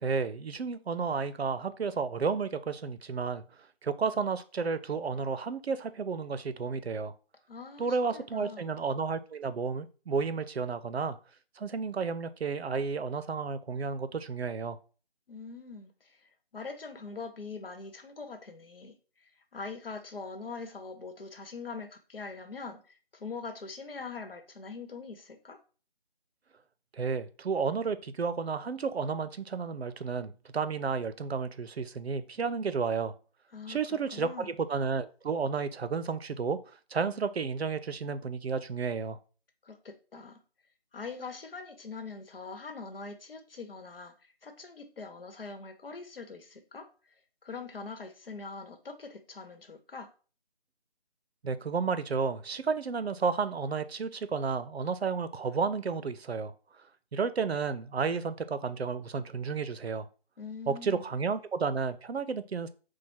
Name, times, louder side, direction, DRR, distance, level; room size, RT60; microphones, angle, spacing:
voice 1, 0.0-3.4 3.8-7.1 7.8-11.2 11.6-14.8 27.0-33.1 33.7-39.2 51.4-56.5 57.1-60.1 60.7-62.7, right 5 dB, 90° right, 0.6 m, -32 dB
voice 2, 7.5-8.7 15.3-16.2 16.5-18.9 19.2-25.6 33.5-33.8 34.1-34.5 39.6-40.4 40.9-44.1 44.4-46.8 47.4-50.1 60.4-61.0, left 4 dB, 65° left, 1.0 m, -43 dB
4.6 x 2.2 x 4.4 m
figure-of-eight pair, 160°, 31 cm